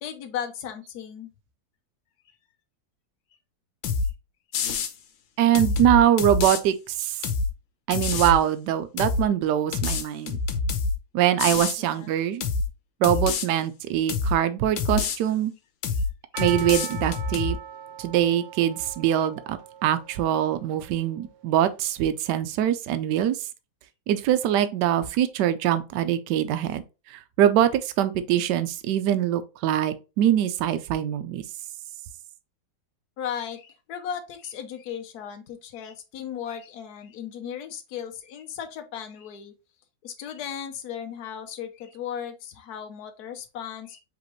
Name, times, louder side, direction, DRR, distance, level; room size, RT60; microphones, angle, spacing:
voice 1, 0.0-1.3 11.8-12.1 33.2-39.5 40.0-44.0, left 8 dB, 65° left, 1.2 m, -36 dB
sound 1, 3.8-4.1 4.5-4.9 5.5-6.6 7.2-7.5 7.9-8.4 9.0-9.2 9.7-11.0 11.4-11.8 12.4-12.7 13.0-13.5 14.1-14.4 14.8-15.2 15.8-16.1 16.4-17.5, left 4 dB, 90° left, 1.5 m, -26 dB
voice 2, 5.4-7.2 7.9-10.4 11.1-12.4 13.0-15.5 16.4-17.6 18.0-23.5 24.1-26.8 27.1-31.4, right 11 dB, 75° right, 1.1 m, -23 dB
Percussion, 16.3-21.3, right 8 dB, 90° right, 1.5 m, -40 dB
5.0 x 3.5 x 3.0 m
omnidirectional pair, 2.0 m